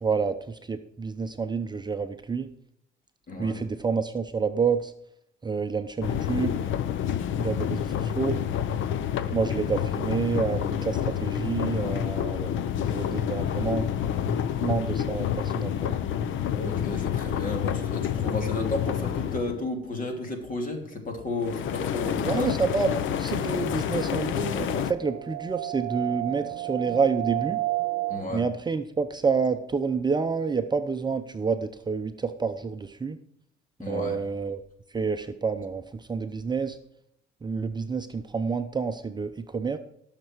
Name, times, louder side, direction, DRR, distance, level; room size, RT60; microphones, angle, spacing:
voice 1, 0.0-2.5 3.4-4.9 5.4-6.6 7.4-8.4 9.3-13.8 14.3-16.0 22.2-27.6 28.3-33.2 33.9-34.6 34.9-36.8 37.4-39.8, right 5 dB, 20° right, 7 dB, 0.7 m, -28 dB
voice 2, 3.3-3.6 16.5-22.6 28.1-28.4 33.8-34.2, left 2 dB, 40° left, 4 dB, 3.0 m, -32 dB
sound 1, 6.0-19.6 21.4-24.9, left 9 dB, 65° left, 0.8 m, -28 dB
sound 2, 23.1-28.4, right 18 dB, 65° right, 0.9 m, -33 dB
17.5 x 6.7 x 4.7 m, 0.75 s
cardioid pair, 105°, 21 cm